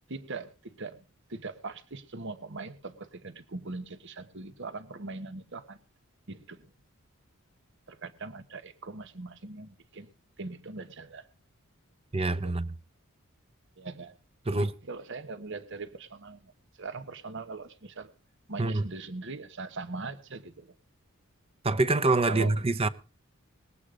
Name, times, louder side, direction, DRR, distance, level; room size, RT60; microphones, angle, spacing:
voice 1, 0.1-1.0 1.3-5.8 6.3-6.7 7.9-10.1 10.4-11.3 12.4-12.6 13.8-14.2 14.5-16.5 16.8-18.1 18.5-20.7 22.3-22.5, right 3 dB, 60° right, 1.2 m, -41 dB
voice 2, 12.1-12.8 14.5-14.7 18.6-18.8 21.6-22.9, right 2 dB, 25° right, 0.8 m, -25 dB
20.5 x 8.5 x 5.0 m
head